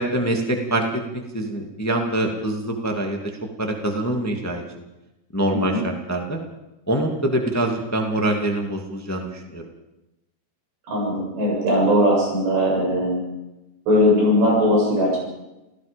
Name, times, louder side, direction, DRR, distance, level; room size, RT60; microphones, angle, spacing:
voice 1, 0.0-4.6 5.3-6.4 6.9-9.6, right 1 dB, 10° left, 3 dB, 1.0 m, -25 dB
voice 2, 5.5-5.8 10.9-13.2 13.9-15.3, equal, 80° right, -3 dB, 10.5 m, -19 dB
29.5 x 17.0 x 5.3 m, 0.98 s
omnidirectional pair, 4.8 m